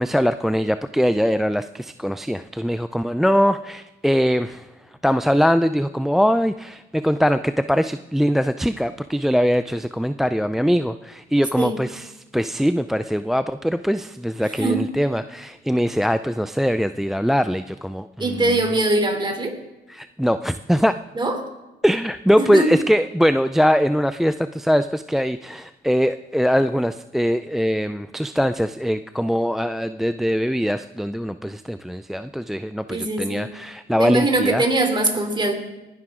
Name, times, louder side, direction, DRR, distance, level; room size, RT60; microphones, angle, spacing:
voice 1, 0.0-4.7 5.0-18.6 19.9-21.0 21.8-34.6, equal, ahead, 12 dB, 0.3 m, -22 dB
voice 2, 18.2-19.6 21.1-21.5 22.4-22.7 32.9-33.4 33.9-35.5, right 2 dB, 25° right, 4 dB, 2.9 m, -22 dB
20.0 x 11.0 x 3.6 m, 1.0 s
cardioid pair, 90°, 20 cm